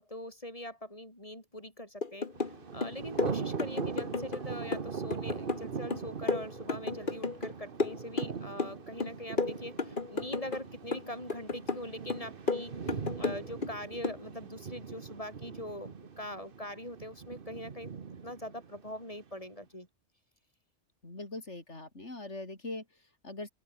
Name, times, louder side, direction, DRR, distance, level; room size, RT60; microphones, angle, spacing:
voice 1, 0.0-2.3 2.7-12.7 13.2-17.9 18.2-19.9, left 1 dB, 30° left, 6.2 m, -42 dB
sound 1, 2.0-2.6 2.8-4.4 4.7-7.5 7.8-8.7 9.0-10.6 10.9-11.8 12.1-13.7 14.0-14.2, left 3 dB, 45° left, 2.1 m, -33 dB
Thunder, 2.3-19.3, right 6 dB, 50° right, 1.3 m, -41 dB
voice 2, 21.0-23.5, left 2 dB, 85° left, 5.3 m, -42 dB
open air
omnidirectional pair, 1.2 m